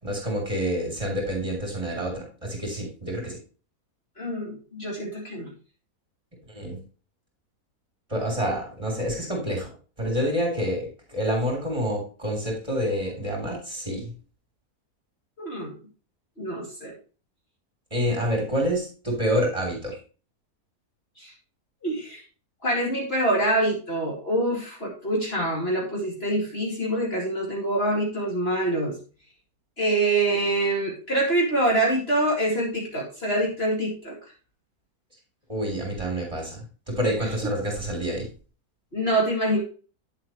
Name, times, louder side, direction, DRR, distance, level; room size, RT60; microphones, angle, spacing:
voice 1, 0.0-3.4 6.5-6.8 8.1-9.7 10.0-14.1 17.9-20.0 35.5-38.3, equal, 20° right, 0 dB, 3.6 m, -28 dB
voice 2, 4.2-5.5 15.4-15.7 16.4-16.9 21.2-21.3 21.8-22.2 22.6-29.0 29.8-34.2 38.9-39.6, right 1 dB, 40° left, -2 dB, 2.6 m, -25 dB
9.5 x 7.6 x 3.1 m, 0.35 s
omnidirectional pair, 1.7 m